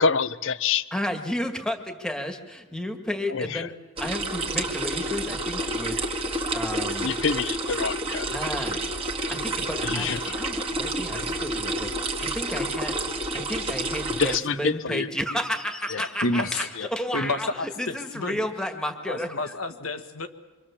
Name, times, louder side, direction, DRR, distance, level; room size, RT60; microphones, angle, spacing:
voice 1, 0.0-0.8 3.3-3.7 7.0-8.3 9.8-10.4 14.2-15.1 15.9-16.1 16.8-16.9, left 5 dB, 65° left, 15 dB, 0.7 m, -26 dB
voice 2, 0.9-3.7 4.0-6.0 6.5-7.1 8.3-8.8 9.3-12.9 13.3-19.5, equal, 5° left, 5 dB, 1.8 m, -32 dB
sound 1, 4.0-14.4, right 1 dB, 25° right, 2.0 m, -29 dB
voice 3, 16.2-16.7 17.1-18.4 19.1-20.3, left 2 dB, 85° left, 8 dB, 1.6 m, -29 dB
27.0 x 24.5 x 7.3 m, 1.3 s
head